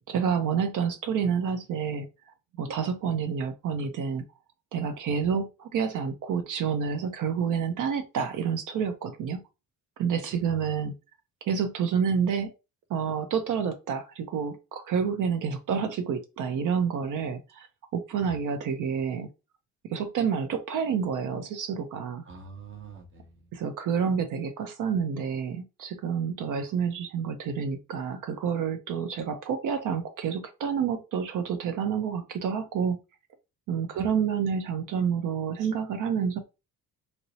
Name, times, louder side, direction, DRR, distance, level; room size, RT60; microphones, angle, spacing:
voice 1, 0.1-4.2 4.7-9.4 10.0-11.0 11.4-12.5 12.9-17.7 17.9-19.3 19.8-22.2 23.5-33.0 33.7-36.4, right 6 dB, 60° right, 7 dB, 0.6 m, -29 dB
voice 2, 10.3-10.8 18.2-18.3 22.2-23.5 33.9-34.1, right 4 dB, 35° right, 4 dB, 0.8 m, -45 dB
4.2 x 2.0 x 2.6 m, 0.27 s
cardioid pair, 155°, 35 cm